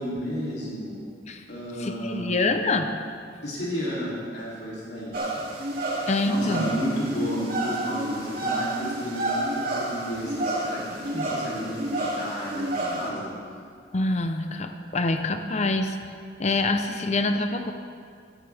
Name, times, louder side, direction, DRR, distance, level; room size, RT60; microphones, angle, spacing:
voice 1, 0.0-1.1 1.5-2.9 3.4-5.2 5.8-5.9 6.2-13.3, equal, 65° left, -6 dB, 3.0 m, -32 dB
voice 2, 1.8-2.9 6.1-6.7 13.9-16.0 16.4-17.7, left 2 dB, 40° left, 7 dB, 0.7 m, -25 dB
sound 1, 5.1-13.1, right 1 dB, 55° right, 3.2 m, -30 dB
16.5 x 15.0 x 3.4 m, 2.2 s
head